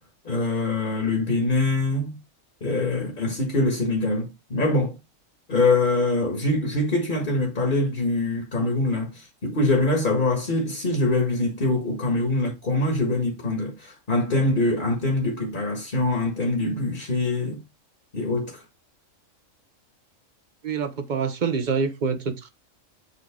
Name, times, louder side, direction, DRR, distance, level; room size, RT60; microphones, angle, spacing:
voice 1, 0.3-2.2 2.6-5.0 5.5-17.6 18.1-18.6, left 2 dB, 40° left, 1.8 m, -24 dB
voice 2, 20.6-22.5, right 5 dB, 40° right, 0.9 m, -26 dB
7.6 x 3.8 x 3.6 m
omnidirectional pair, 1.4 m